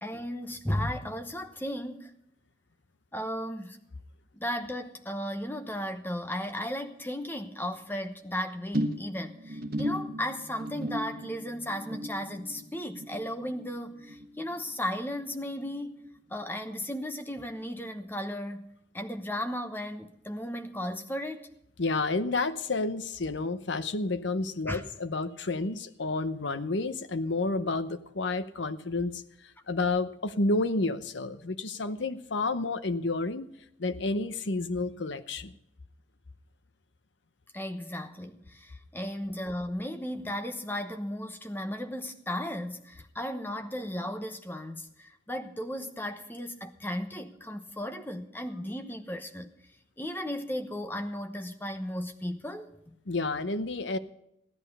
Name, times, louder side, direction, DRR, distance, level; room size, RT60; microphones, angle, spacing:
voice 1, 0.0-2.1 3.1-3.8 4.3-16.0 16.3-18.7 18.9-21.5 24.7-24.8 37.5-49.5 50.0-52.9, equal, 10° left, 1.0 m, -35 dB
sound 1, 8.7-15.3 15.6-16.0 16.3-16.4, equal, 50° right, 1.4 m, -37 dB
voice 2, 21.8-29.2 29.7-33.5 33.8-35.5 53.1-54.0, left 3 dB, 70° left, 0.9 m, -30 dB
15.5 x 11.0 x 5.5 m
head